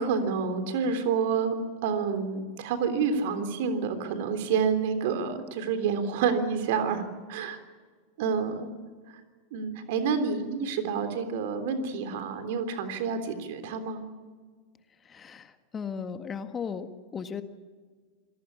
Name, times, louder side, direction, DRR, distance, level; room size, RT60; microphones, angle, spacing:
voice 1, 0.0-1.5 1.8-7.0 7.3-7.6 8.2-8.7 9.5-14.0, right 6 dB, 60° right, 8 dB, 3.4 m, -28 dB
voice 2, 15.1-17.4, left 6 dB, 25° left, 8 dB, 1.8 m, -36 dB
27.0 x 18.0 x 8.4 m, 1.5 s
figure-of-eight pair, 90°, 0 cm